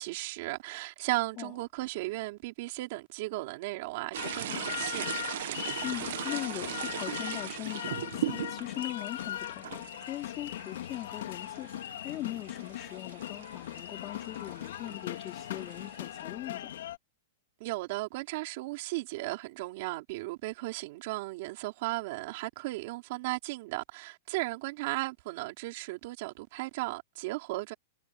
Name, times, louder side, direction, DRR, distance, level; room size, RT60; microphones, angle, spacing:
voice 1, 0.0-5.0 17.6-27.7, right 21 dB, 40° right, 4.1 m, -36 dB
sound 1, 4.1-16.2, right 13 dB, 55° right, 1.3 m, -40 dB
sound 2, 4.2-17.0, left 12 dB, 60° left, 2.2 m, -39 dB
voice 2, 5.8-16.7, left 15 dB, 25° left, 3.0 m, -40 dB
supercardioid pair, 170°, 0 cm